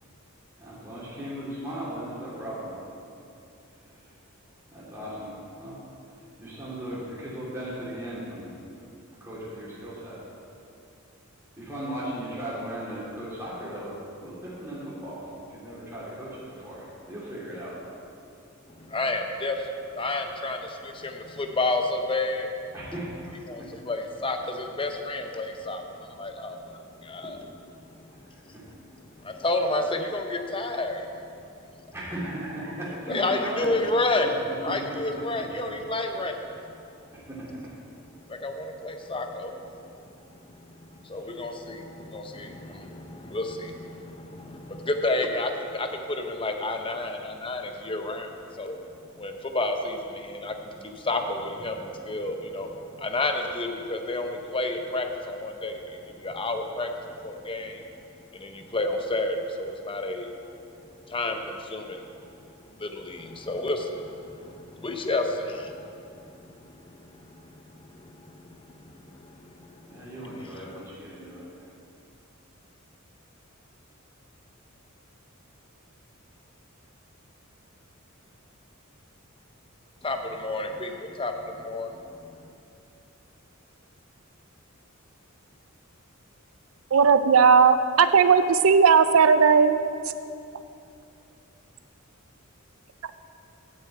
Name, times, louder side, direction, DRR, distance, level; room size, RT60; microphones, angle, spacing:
voice 1, 0.6-2.7 3.7-4.1 4.7-5.8 6.1-8.9 9.2-10.2 11.6-17.8 22.7-23.7 28.1-28.6 29.1-29.4 31.9-33.7 34.2-35.2 37.1-37.5 41.1-41.4 69.9-71.7, right 1 dB, 15° right, -8 dB, 2.9 m, -37 dB
voice 2, 18.8-22.5 23.5-27.4 27.9-28.0 29.2-31.1 33.1-34.3 34.6-36.5 38.3-48.8 49.2-57.8 58.3-60.3 61.1-62.1 62.8-70.0 80.0-82.5, left 2 dB, 25° left, 5 dB, 0.8 m, -31 dB
voice 3, 86.9-89.8, right 6 dB, 75° right, 11 dB, 0.5 m, -17 dB
8.9 x 7.2 x 7.8 m, 2.6 s
head